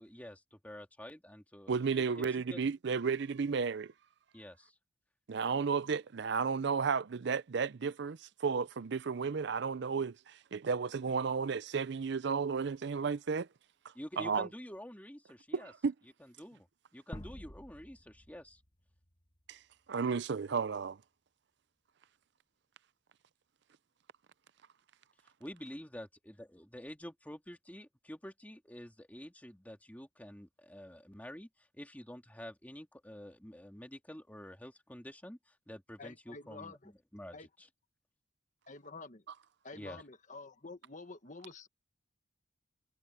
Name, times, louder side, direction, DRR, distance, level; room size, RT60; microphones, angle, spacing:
voice 1, 0.0-2.6 4.3-4.8 13.9-15.7 16.2-16.7 16.9-18.6 25.4-37.7 39.7-40.0, equal, 10° left, 2.3 m, -48 dB
voice 2, 1.7-3.9 5.3-13.5 14.2-14.5 15.5-15.9 19.5-19.6 19.9-21.0, right 5 dB, 60° right, 0.5 m, -33 dB
sound 1, 17.1-20.1, left 1 dB, 25° left, 1.5 m, -50 dB
voice 3, 36.0-36.9 37.3-37.5 38.7-39.2 39.6-41.7, left 3 dB, 40° left, 1.5 m, -49 dB
head